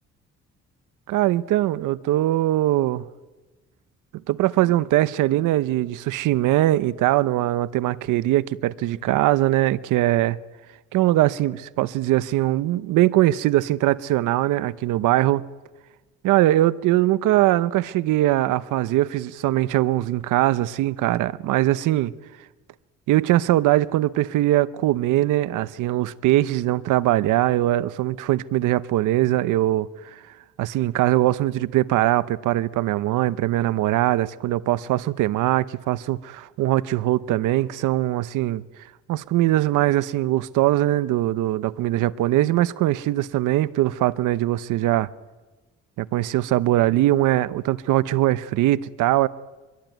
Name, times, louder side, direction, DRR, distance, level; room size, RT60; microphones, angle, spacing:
voice 1, 1.1-3.0 4.3-10.4 10.9-15.4 16.2-22.1 23.1-30.2 30.6-38.6 39.1-45.1 46.0-49.3, right 15 dB, 90° right, 0.8 m, -21 dB
24.0 x 23.0 x 9.2 m
cardioid pair, 90°, 30 cm